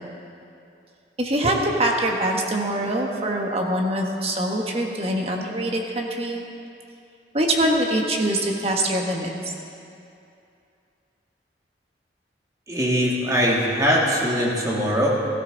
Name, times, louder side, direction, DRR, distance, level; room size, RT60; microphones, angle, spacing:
voice 1, 1.2-6.4 7.3-9.3, right 1 dB, 35° right, 1 dB, 1.5 m, -23 dB
voice 2, 12.7-15.1, equal, 20° right, -3 dB, 2.2 m, -21 dB
17.0 x 15.5 x 4.0 m, 2.6 s
head